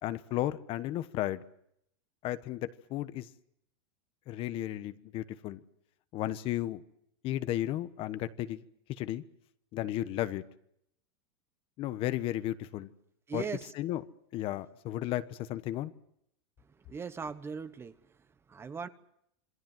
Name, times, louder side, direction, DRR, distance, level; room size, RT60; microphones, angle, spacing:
voice 1, 0.0-1.4 2.2-3.3 4.3-5.6 6.1-6.8 7.2-8.6 8.9-9.2 9.7-10.4 11.8-12.9 13.3-13.5 13.7-14.0 14.3-15.9, left 14 dB, 40° left, 13 dB, 1.1 m, -34 dB
voice 2, 13.3-13.7 16.9-17.9 18.5-18.9, right 5 dB, 20° right, 13 dB, 1.0 m, -38 dB
27.0 x 20.0 x 7.8 m, 0.75 s
supercardioid pair, 140°, 14 cm